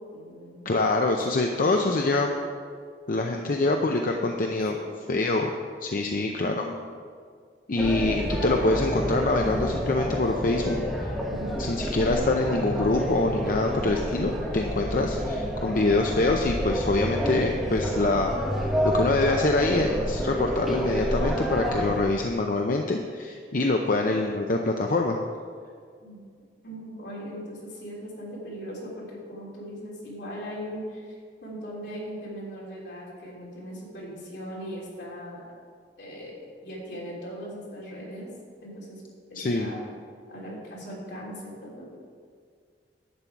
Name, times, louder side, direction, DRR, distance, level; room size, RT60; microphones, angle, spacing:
voice 1, 0.1-0.8 1.4-2.4 3.3-3.6 4.7-4.9 6.0-6.8 11.3-11.6 26.0-26.3 26.6-31.1 31.4-35.4 36.0-36.3 36.6-38.3 38.6-39.0 39.3-39.9 40.3-42.0, equal, 75° left, -5 dB, 3.3 m, -39 dB
voice 2, 0.6-2.3 3.1-5.5 5.8-6.6 7.7-10.8 11.6-18.7 18.9-25.2 39.4-39.7, left 2 dB, 50° left, 2 dB, 0.6 m, -25 dB
sound 1, 7.8-22.0, equal, ahead, 1.5 m, -29 dB
11.0 x 8.5 x 4.6 m, 2.1 s
head